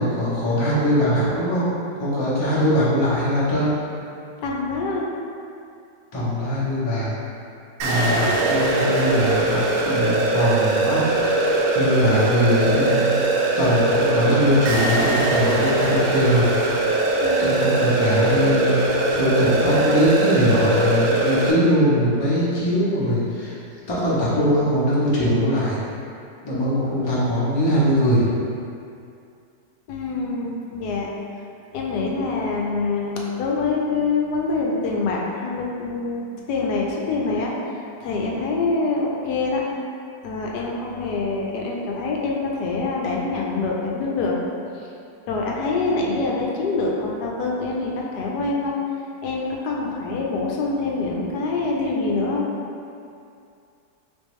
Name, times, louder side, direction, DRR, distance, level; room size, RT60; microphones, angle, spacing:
voice 1, 0.0-3.7 6.1-7.2 7.8-13.2 13.6-16.5 17.4-23.6 23.9-25.8 26.4-28.2, equal, 40° left, -8 dB, 0.3 m, -21 dB
voice 2, 4.4-5.1 17.2-17.7 29.9-31.1 31.7-36.2 36.5-37.5 38.0-39.6 40.2-44.4 45.3-48.8 49.2-52.5, left 3 dB, 75° left, -2 dB, 1.1 m, -25 dB
sound 1, 7.8-21.5, right 2 dB, 70° right, 0.9 m, -21 dB
3.5 x 3.5 x 3.1 m, 2.5 s
omnidirectional pair, 1.8 m